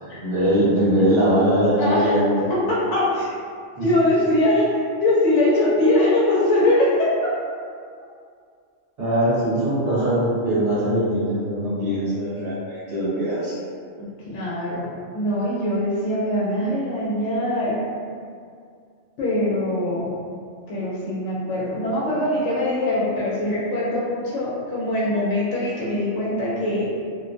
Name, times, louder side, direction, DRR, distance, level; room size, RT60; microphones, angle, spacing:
voice 1, 0.0-2.2 3.8-3.9 9.0-13.6, right 1 dB, 60° right, -11 dB, 1.2 m, -21 dB
voice 2, 1.8-2.1 2.5-3.3 3.8-7.1 14.2-17.8 19.2-20.1 20.7-26.9, left 1 dB, 70° left, -6 dB, 0.8 m, -22 dB
2.4 x 2.1 x 2.5 m, 2.2 s
omnidirectional pair, 1.4 m